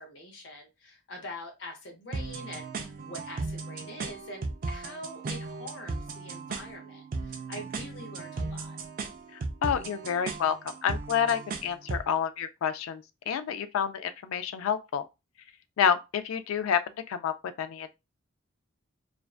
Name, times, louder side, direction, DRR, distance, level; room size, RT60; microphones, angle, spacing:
voice 1, 0.0-8.8, left 1 dB, 60° left, 0.7 m, -44 dB
sound 1, 2.1-12.1, right 3 dB, 40° right, 0.3 m, -37 dB
voice 2, 9.3-15.0 15.8-16.8 17.1-17.9, left 7 dB, 85° left, 0.3 m, -29 dB
2.5 x 2.2 x 2.3 m
head